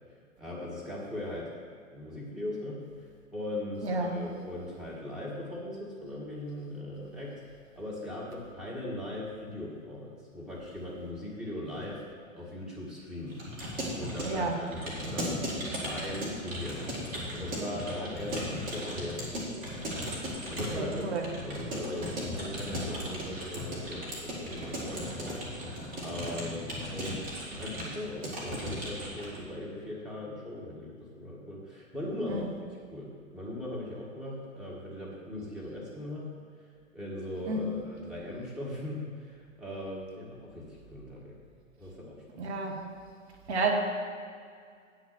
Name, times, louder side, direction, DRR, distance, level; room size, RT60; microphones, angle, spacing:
voice 1, 0.4-1.5 1.9-2.8 3.3-7.4 7.8-12.0 12.3-13.4 14.0-16.8 17.3-19.7 20.5-25.4 25.7-32.5 32.9-36.3 36.6-41.4 41.8-42.5, left 1 dB, ahead, -6 dB, 1.8 m, -39 dB
voice 2, 3.8-4.1 14.2-14.5 20.6-21.2 32.3-32.4 37.5-37.6 42.4-42.8 43.5-43.7, right 3 dB, 55° right, 1 dB, 1.3 m, -31 dB
Keyboard (musical) / Computer keyboard, 13.3-29.4, equal, 20° right, 2.4 m, -37 dB
9.3 x 6.3 x 6.2 m, 2.1 s
figure-of-eight pair, 115°, 40 cm